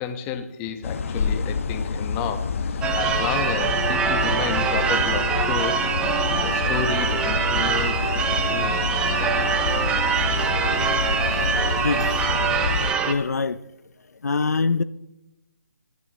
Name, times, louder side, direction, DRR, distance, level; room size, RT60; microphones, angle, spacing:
voice 1, 0.0-8.8 9.1-9.3, left 7 dB, 15° left, 6 dB, 1.2 m, -32 dB
sound 1, 0.8-12.9, left 5 dB, 55° left, 1.1 m, -28 dB
Church bell / Car / Alarm, 2.8-13.1, right 6 dB, 10° right, 0.8 m, -24 dB
voice 2, 13.1-13.6 14.2-14.8, left 4 dB, 80° left, 14 dB, 0.6 m, -23 dB
29.0 x 10.5 x 3.0 m, 0.94 s
figure-of-eight pair, 155°, 9 cm